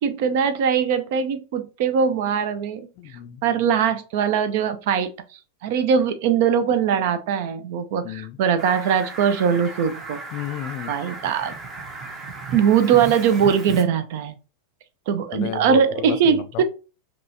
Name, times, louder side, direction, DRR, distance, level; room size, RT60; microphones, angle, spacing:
voice 1, 0.0-2.9 3.4-10.2 10.9-11.5 12.5-14.3 15.1-16.6, right 7 dB, 50° right, 0.6 m, -21 dB
voice 2, 3.0-3.4 8.0-8.4 10.3-10.9 15.3-16.6, left 11 dB, 40° left, 0.4 m, -32 dB
Fowl, 8.6-13.8, right 3 dB, 25° right, 1.0 m, -35 dB
5.3 x 3.0 x 2.7 m
figure-of-eight pair, 90°, 0 cm